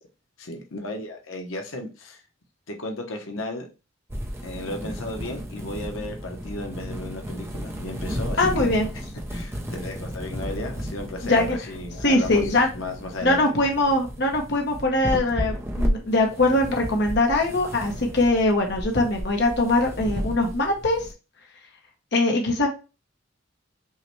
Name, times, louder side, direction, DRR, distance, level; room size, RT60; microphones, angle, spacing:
voice 1, 0.4-2.2 2.7-3.7 4.4-8.7 9.3-13.4, left 2 dB, 90° left, 0.9 m, -34 dB
sound 1, 4.1-21.1, equal, 15° right, 0.5 m, -33 dB
voice 2, 8.4-8.9 11.2-11.6 12.0-12.7 13.2-21.0 22.1-22.7, left 2 dB, 60° left, 0.8 m, -22 dB
5.5 x 2.2 x 3.1 m
head